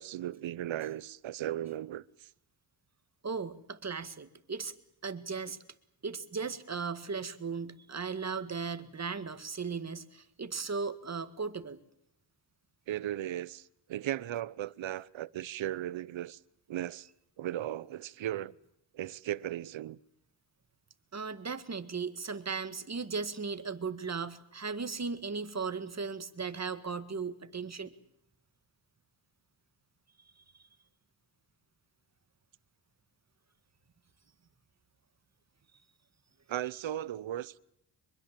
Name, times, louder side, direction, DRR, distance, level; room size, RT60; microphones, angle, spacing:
voice 1, 0.0-2.3 12.9-16.4 16.7-17.1 17.4-18.5 18.9-20.0 36.5-37.6, right 12 dB, 70° right, 0.9 m, -36 dB
voice 2, 3.2-4.7 5.0-5.6 6.0-11.8 21.1-27.9, right 5 dB, 30° right, 1.9 m, -37 dB
24.5 x 22.0 x 7.5 m
cardioid pair, 80°, 49 cm